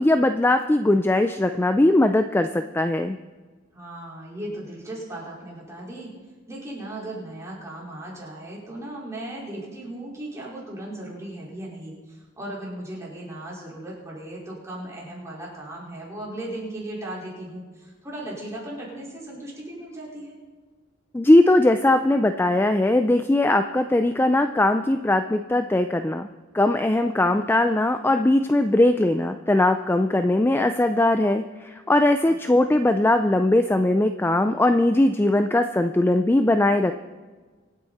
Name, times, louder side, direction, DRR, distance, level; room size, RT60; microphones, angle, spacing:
voice 1, 0.0-3.2 21.1-26.3 26.5-36.9, left 1 dB, 10° left, 8 dB, 0.4 m, -20 dB
voice 2, 3.7-6.1 6.5-20.3 32.2-32.5, right 1 dB, 15° right, -6 dB, 4.7 m, -37 dB
25.0 x 9.2 x 4.2 m, 1.4 s
head